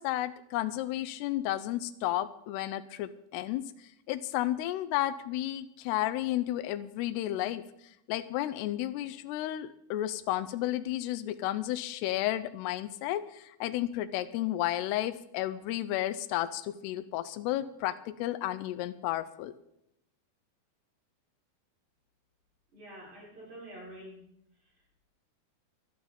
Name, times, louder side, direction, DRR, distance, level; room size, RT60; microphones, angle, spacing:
voice 1, 0.0-3.6 4.1-7.6 8.1-19.5, left 14 dB, 90° left, 12 dB, 2.7 m, -32 dB
voice 2, 22.7-24.2, right 1 dB, 45° right, -6 dB, 7.2 m, -47 dB
17.5 x 11.5 x 4.3 m, 0.79 s
omnidirectional pair, 4.6 m